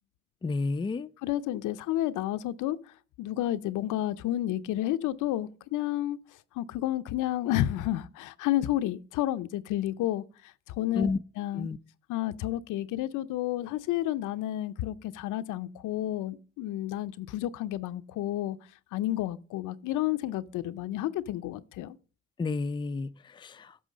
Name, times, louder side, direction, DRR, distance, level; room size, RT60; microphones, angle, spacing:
voice 1, 0.4-1.1 10.9-11.2 11.5-11.8 22.4-23.8, left 3 dB, 15° left, 0.4 m, -31 dB
voice 2, 1.2-2.8 3.2-6.2 6.6-10.2 10.7-11.7 12.1-18.6 18.9-22.0, left 14 dB, 85° left, 0.6 m, -31 dB
9.3 x 6.2 x 5.0 m
cardioid pair, 90°, 30 cm